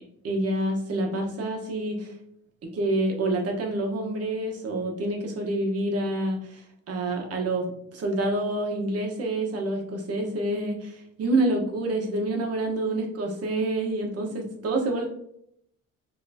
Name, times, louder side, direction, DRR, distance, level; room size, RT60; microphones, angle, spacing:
voice 1, 0.2-2.2 2.7-7.7 7.9-15.1, right 2 dB, 45° right, 2 dB, 1.2 m, -27 dB
5.7 x 2.9 x 2.8 m, 0.72 s
cardioid pair, 115°, 33 cm